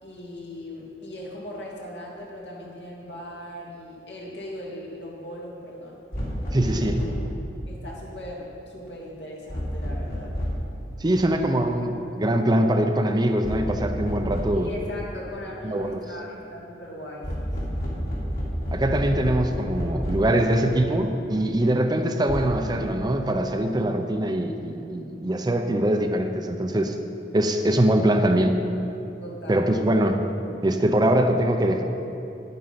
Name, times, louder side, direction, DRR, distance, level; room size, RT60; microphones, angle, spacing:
voice 1, 0.0-6.0 6.5-7.0 7.7-10.3 14.5-17.8 29.2-29.7, left 1 dB, 70° left, -4 dB, 2.6 m, -39 dB
sound 1, 6.1-7.3 9.5-10.7 13.4-14.7 17.2-20.4 22.3-22.5, equal, 50° left, 2.8 m, -29 dB
voice 2, 6.5-7.0 11.0-14.7 15.6-16.0 18.7-27.0 27.3-28.5 29.5-30.2 30.6-31.8, right 1 dB, 25° right, 5 dB, 0.6 m, -23 dB
10.0 x 9.5 x 5.8 m, 2.9 s
head